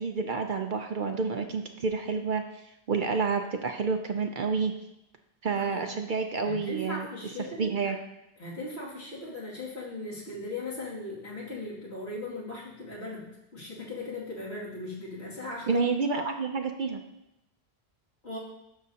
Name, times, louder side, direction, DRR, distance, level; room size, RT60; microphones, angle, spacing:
voice 1, 0.0-2.6 2.9-4.7 5.4-7.1 7.6-8.0 15.7-17.0, right 4 dB, 55° right, 5 dB, 0.7 m, -29 dB
voice 2, 6.4-7.9 8.4-15.8 18.2-18.4, left 2 dB, 70° left, -7 dB, 2.8 m, -38 dB
12.0 x 6.4 x 2.8 m, 0.86 s
omnidirectional pair, 1.1 m